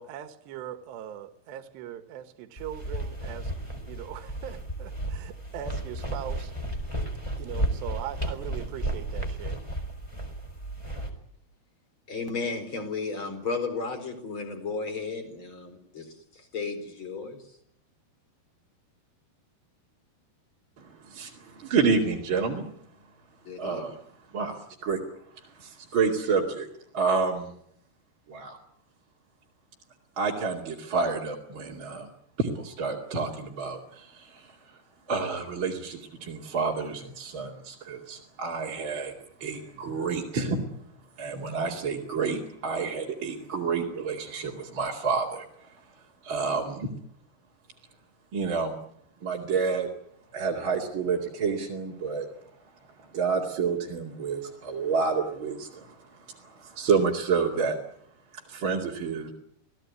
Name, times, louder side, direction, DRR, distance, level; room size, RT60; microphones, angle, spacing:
voice 1, 0.0-3.5 3.8-6.5 7.4-9.6, right 10 dB, 80° right, 9 dB, 3.5 m, -40 dB
sound 1, 2.6-11.1, right 1 dB, 5° left, 3.6 m, -33 dB
voice 2, 12.1-17.4 23.4-23.9, left 4 dB, 30° left, 8 dB, 4.7 m, -34 dB
voice 3, 20.8-22.7 23.6-24.0 24.3-25.0 25.4-26.7 26.9-27.5 28.3-28.6 30.2-32.1 32.4-34.8 35.1-39.1 39.4-40.6 41.2-45.8 46.2-46.9 48.3-48.8 49.2-49.9 50.3-52.3 53.0-57.8 58.5-59.3, right 5 dB, 35° right, -2 dB, 2.6 m, -29 dB
27.5 x 18.0 x 9.6 m, 0.74 s
omnidirectional pair, 4.8 m